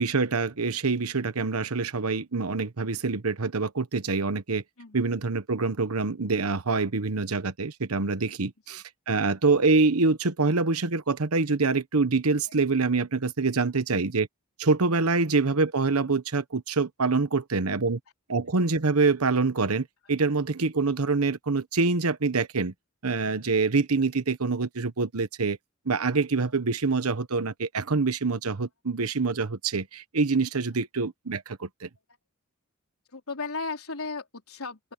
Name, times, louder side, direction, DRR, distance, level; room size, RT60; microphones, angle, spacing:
voice 1, 0.0-4.6 4.9-14.3 14.6-18.0 18.3-22.7 23.0-25.6 25.9-31.9, right 4 dB, 90° right, 1.1 m, -25 dB
voice 2, 4.8-5.1 8.7-8.8 12.5-12.6 13.4-13.5 33.1-34.8, left 4 dB, 75° left, 4.0 m, -36 dB
open air
head